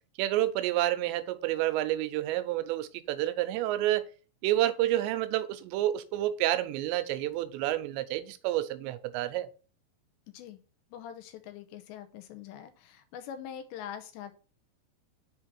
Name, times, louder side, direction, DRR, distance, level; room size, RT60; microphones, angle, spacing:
voice 1, 0.2-4.0 4.4-9.5, right 14 dB, 85° right, 2.9 m, -29 dB
voice 2, 10.3-10.6 10.9-14.3, left 9 dB, 85° left, 3.1 m, -43 dB
7.3 x 3.7 x 6.3 m
omnidirectional pair, 5.0 m